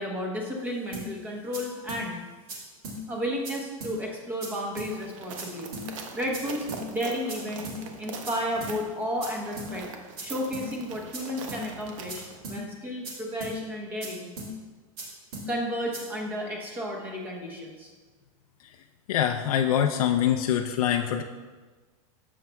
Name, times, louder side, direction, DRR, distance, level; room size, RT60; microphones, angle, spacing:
voice 1, 0.0-2.2 3.1-7.6 8.0-9.9 10.2-12.2 12.5-14.3 15.5-17.9, equal, 10° right, -1 dB, 1.0 m, -33 dB
sound 1, 0.9-1.1 1.5-1.6 1.9-2.0 2.5-2.6 2.8-3.0 3.4-3.5 3.8-3.9 4.4-4.5 4.8-4.9 5.4-5.5 5.7-5.9 6.3-6.4 6.7-6.8 7.3-7.4 7.6-7.8 8.2-8.3 8.6-8.7 9.2-9.3 9.6-9.7 10.2-10.3 10.5-10.7 11.1-11.2 11.5-11.6 12.1-12.2 12.4-12.6 13.0-13.1 13.4-13.5 14.0-14.1 14.4-14.5 15.0-15.1 15.3-15.5 15.9-16.0, right 2 dB, 35° right, 2.0 m, -37 dB
sound 2, 4.7-12.4, right 4 dB, 60° right, 1.1 m, -42 dB
voice 2, 19.1-21.2, left 10 dB, 80° left, 4 dB, 0.5 m, -24 dB
12.0 x 7.3 x 2.3 m, 1.4 s
supercardioid pair, 175°, 18 cm